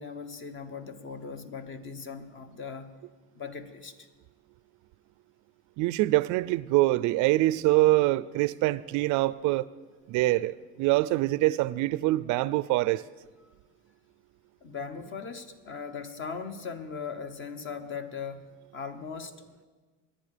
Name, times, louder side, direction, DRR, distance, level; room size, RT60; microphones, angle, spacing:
voice 1, 0.0-2.9 3.3-4.1 13.4-13.5 14.6-18.5 18.7-19.5, left 5 dB, 35° left, 1.2 m, -39 dB
voice 2, 5.8-9.7 10.1-13.0, right 18 dB, 60° right, 0.5 m, -24 dB
24.5 x 10.0 x 5.0 m
cardioid pair, 135°, 34 cm